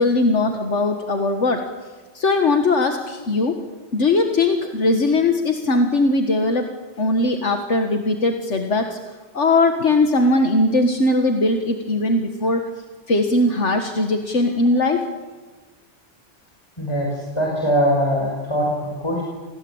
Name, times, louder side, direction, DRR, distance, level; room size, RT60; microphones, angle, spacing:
voice 1, 0.0-1.6 2.2-3.5 3.9-6.7 7.0-9.0 9.3-12.6 13.1-15.0, left 2 dB, 70° left, 5 dB, 2.0 m, -19 dB
voice 2, 16.8-19.2, equal, 20° left, -2 dB, 5.7 m, -22 dB
28.0 x 19.0 x 8.8 m, 1.3 s
omnidirectional pair, 1.2 m